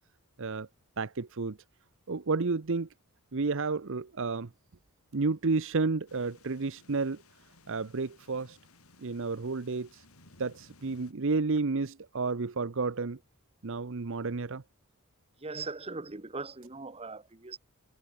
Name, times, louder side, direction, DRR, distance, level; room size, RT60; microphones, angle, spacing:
voice 1, 1.0-1.6 2.1-2.9 3.3-4.5 5.1-7.2 7.7-8.6 9.0-10.0 10.4-13.2 13.6-14.6, right 4 dB, 60° right, 0.8 m, -31 dB
sound 1, 6.1-11.1, left 2 dB, 75° left, 6.1 m, -59 dB
voice 2, 15.4-17.6, right 3 dB, 25° right, 1.1 m, -40 dB
head